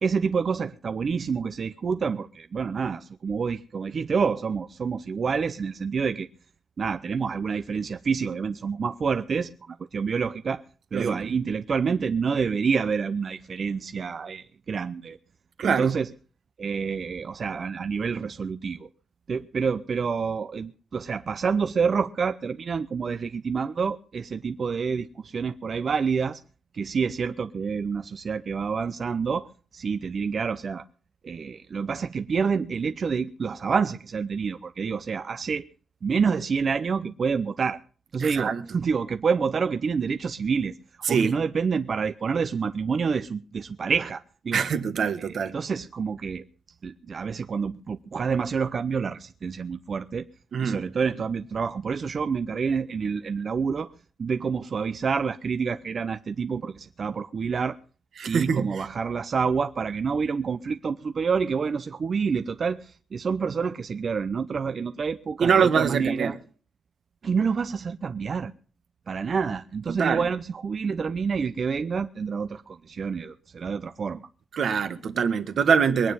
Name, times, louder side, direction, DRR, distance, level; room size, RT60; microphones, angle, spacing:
voice 1, 0.0-6.3 6.8-10.6 10.9-15.2 15.6-16.1 16.6-18.9 19.3-26.4 26.7-29.5 29.7-30.8 31.2-35.6 36.0-37.8 38.1-40.7 41.1-44.6 45.2-46.4 46.8-50.2 50.6-53.9 54.2-57.8 58.3-66.3 67.2-68.5 69.1-74.2, right 5 dB, 45° right, 0.6 m, -28 dB
voice 2, 10.9-11.3 15.6-16.0 38.2-38.6 41.0-41.3 44.5-45.5 50.5-50.8 58.2-58.8 65.4-66.4 69.9-70.2 74.5-76.1, right 6 dB, 65° right, 1.5 m, -24 dB
22.0 x 9.4 x 5.5 m
wide cardioid pair, 130°, 0 cm